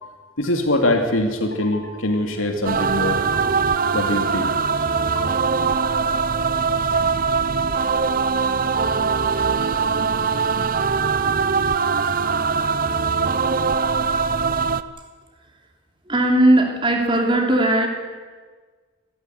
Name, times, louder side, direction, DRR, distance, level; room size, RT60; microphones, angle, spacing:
voice 1, 0.0-5.6, left 1 dB, 90° left, 3 dB, 2.8 m, -24 dB
sound 1, 2.6-14.8, right 5 dB, 45° right, 0.8 m, -21 dB
voice 2, 16.1-17.9, right 1 dB, 25° right, 3 dB, 3.3 m, -17 dB
26.0 x 14.0 x 9.5 m, 1.4 s
head